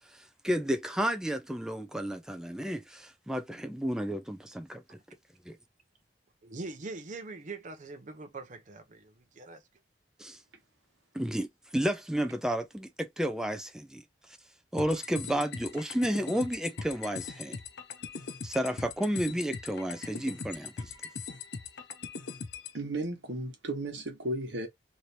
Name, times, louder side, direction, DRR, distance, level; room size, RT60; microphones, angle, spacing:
voice 1, 0.1-5.0 5.5-5.6 10.2-10.4 11.1-14.0 14.7-17.6 18.4-20.9, equal, 5° right, 0.4 m, -32 dB
voice 2, 6.4-9.6, right 3 dB, 45° right, 0.6 m, -42 dB
sound 1, 14.8-22.8, left 5 dB, 70° left, 0.6 m, -41 dB
voice 3, 22.7-24.7, right 1 dB, 80° right, 1.2 m, -34 dB
3.1 x 2.7 x 2.7 m
head